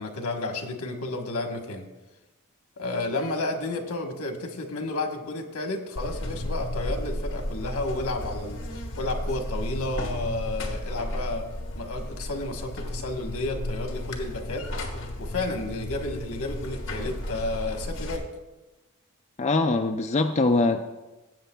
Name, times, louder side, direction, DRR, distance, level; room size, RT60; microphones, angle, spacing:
voice 1, 0.0-1.9 2.8-11.4 11.7-14.7 15.2-18.2, left 2 dB, 80° left, 4 dB, 1.2 m, -31 dB
Buzz, 6.0-18.2, left 1 dB, 60° left, 1.3 m, -33 dB
voice 2, 19.4-20.9, left 3 dB, 30° left, 5 dB, 0.3 m, -23 dB
17.0 x 7.9 x 2.3 m, 1.1 s
head